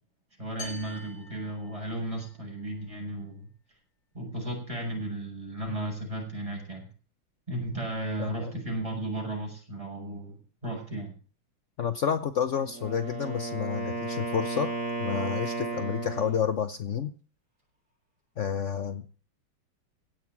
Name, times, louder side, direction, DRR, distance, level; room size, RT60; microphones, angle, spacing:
voice 1, 0.4-3.5 4.1-6.9 7.5-11.1, right 1 dB, 15° right, 0 dB, 7.2 m, -35 dB
sound 1, 0.6-2.3, left 2 dB, 85° left, 4.6 m, -45 dB
voice 2, 8.2-8.5 11.8-14.7 15.0-17.1 18.4-19.1, left 8 dB, 65° left, 11 dB, 0.7 m, -30 dB
Wind instrument woodwind instrument, 12.6-16.5, right 3 dB, 35° right, 6.7 m, -34 dB
17.0 x 6.7 x 9.6 m, 0.40 s
omnidirectional pair, 2.4 m